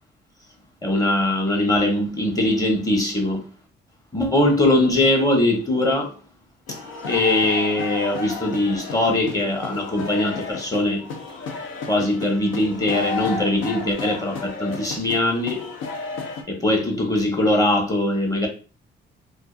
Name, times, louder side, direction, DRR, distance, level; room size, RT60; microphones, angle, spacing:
voice 1, 0.8-3.5 4.1-6.1 7.1-11.1 11.9-15.7 16.5-18.5, left 1 dB, 15° left, 0.8 m, -21 dB
sound 1, 6.7-16.4, left 4 dB, 90° left, 0.6 m, -32 dB
2.5 x 2.4 x 2.3 m
cardioid pair, 90°, 20 cm